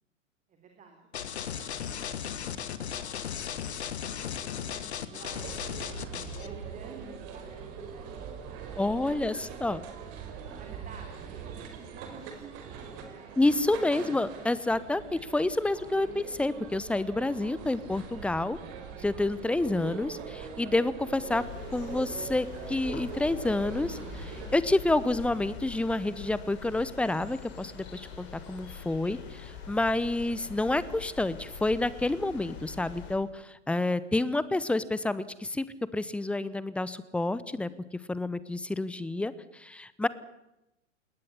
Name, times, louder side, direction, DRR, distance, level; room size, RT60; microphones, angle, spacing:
voice 1, 0.5-2.5 2.8-3.6 4.0-5.8 6.4-9.9 10.5-13.3, right 5 dB, 20° right, 3 dB, 3.6 m, -51 dB
sound 1, 1.1-6.5, left 8 dB, 60° left, 2.1 m, -36 dB
sound 2, 5.3-24.6, right 6 dB, 35° right, 5.1 m, -42 dB
voice 2, 8.8-9.8 13.4-18.6 19.0-21.5 21.7-37.7 38.1-40.1, left 2 dB, 5° left, 17 dB, 0.8 m, -29 dB
sound 3, 21.3-33.2, left 6 dB, 30° left, 5.8 m, -44 dB
20.5 x 18.5 x 10.0 m, 0.90 s
figure-of-eight pair, 105°, 37 cm